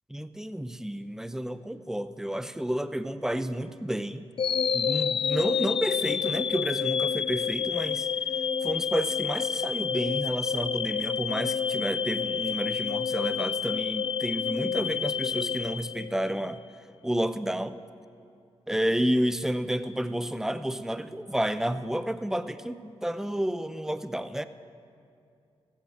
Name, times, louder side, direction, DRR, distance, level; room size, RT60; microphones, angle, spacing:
voice 1, 0.1-4.2 4.7-8.1 8.6-16.6 17.0-17.8 18.7-24.4, right 1 dB, 5° right, 12 dB, 0.6 m, -30 dB
sound 1, 4.4-16.5, left 7 dB, 50° left, 0.3 m, -29 dB
15.5 x 8.6 x 7.5 m, 2.4 s
cardioid pair, 60°, 11 cm